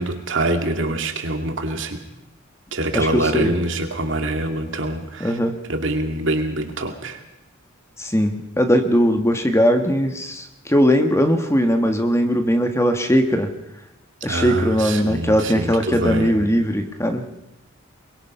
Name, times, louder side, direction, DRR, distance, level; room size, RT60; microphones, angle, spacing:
voice 1, 0.0-2.0 2.7-5.4 5.7-7.2 14.2-16.4, right 1 dB, 65° right, 5 dB, 2.5 m, -25 dB
voice 2, 2.9-3.5 5.2-5.6 8.0-13.5 14.2-17.2, equal, 15° left, 6 dB, 1.4 m, -19 dB
23.0 x 22.0 x 5.6 m, 0.91 s
head